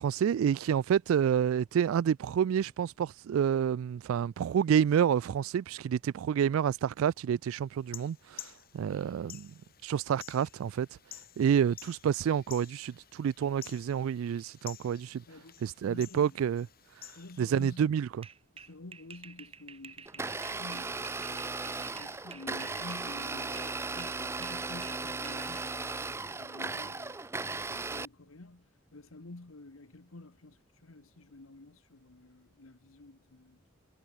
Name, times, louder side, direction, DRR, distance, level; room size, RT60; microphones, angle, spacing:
voice 1, 0.0-8.4 8.7-9.5 9.8-10.9 11.4-15.2 15.6-16.7 17.4-18.1, right 8 dB, 85° right, 0.3 m, -28 dB
sound 1, 7.7-17.8, left 12 dB, 45° left, 6.8 m, -51 dB
voice 2, 15.3-16.4 17.1-18.0 18.5-27.3 27.7-33.7, left 2 dB, 85° left, 1.3 m, -50 dB
sound 2, 18.2-23.7 24.0-25.6, right 6 dB, 25° right, 4.1 m, -50 dB
Domestic sounds home sounds, 20.1-28.1, right 3 dB, 10° right, 0.4 m, -36 dB
head